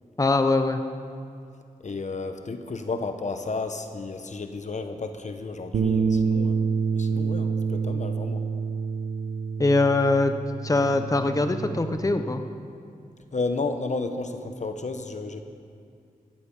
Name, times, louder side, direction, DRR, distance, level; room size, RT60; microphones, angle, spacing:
voice 1, 0.2-0.8 9.6-10.3 10.6-12.4, left 2 dB, 25° left, 8 dB, 0.8 m, -22 dB
voice 2, 1.8-6.6 6.9-8.4 13.3-15.4, left 3 dB, 55° left, 7 dB, 1.0 m, -32 dB
Bass guitar, 5.7-12.0, right 5 dB, 90° right, 0.9 m, -27 dB
15.0 x 12.0 x 5.4 m, 2.4 s
cardioid pair, 55°, 15 cm